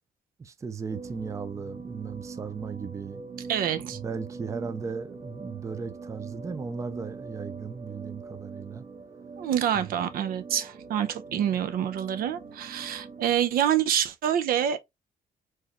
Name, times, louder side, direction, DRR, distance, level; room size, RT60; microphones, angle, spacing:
voice 1, 0.4-3.2 3.9-8.8 9.7-9.9 11.3-11.4, right 5 dB, 20° right, 0.5 m, -36 dB
sound 1, 0.9-13.4, right 4 dB, 50° right, 1.5 m, -43 dB
voice 2, 3.5-4.0 9.4-14.8, right 10 dB, 75° right, 0.6 m, -27 dB
4.6 x 3.0 x 3.0 m
cardioid pair, 145°, 15 cm